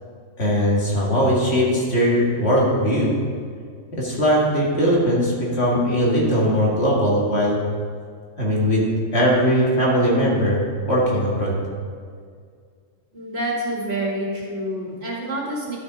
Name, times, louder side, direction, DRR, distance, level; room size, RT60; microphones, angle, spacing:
voice 1, 0.4-3.1 3.9-7.6 8.4-8.8 9.1-11.5, equal, 50° left, -4 dB, 2.2 m, -20 dB
voice 2, 13.1-15.8, right 1 dB, 50° right, -3 dB, 2.1 m, -27 dB
12.5 x 6.6 x 4.9 m, 2.1 s
omnidirectional pair, 1.4 m